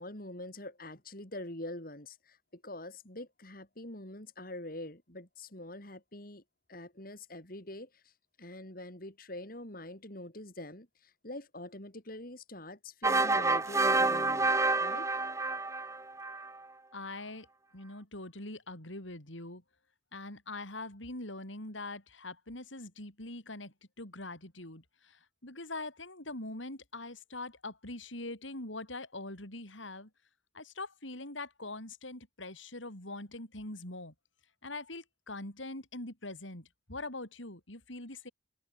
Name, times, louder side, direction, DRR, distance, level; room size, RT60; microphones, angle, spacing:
voice 1, 0.0-6.4 6.7-7.9 8.4-14.5 14.8-15.1, left 1 dB, 50° left, 4.9 m, -45 dB
sound 1, 13.0-16.5, right 3 dB, 15° right, 2.3 m, -28 dB
voice 2, 16.9-17.5 17.7-19.6 20.1-30.1 30.5-34.1 34.6-38.3, left 2 dB, 85° left, 7.6 m, -43 dB
head